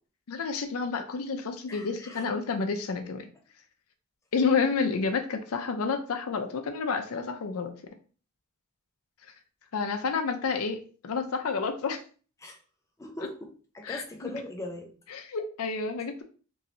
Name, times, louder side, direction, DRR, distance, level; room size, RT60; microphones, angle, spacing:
voice 1, 0.3-3.3 4.3-7.7 9.7-10.8 11.0-12.0 13.8-14.3 15.1-16.2, left 5 dB, 85° left, 6 dB, 0.5 m, -29 dB
voice 2, 1.7-2.2 12.4-12.6 13.0-14.9, left 1 dB, 15° left, 2 dB, 0.4 m, -40 dB
3.0 x 2.6 x 2.8 m, 0.39 s
head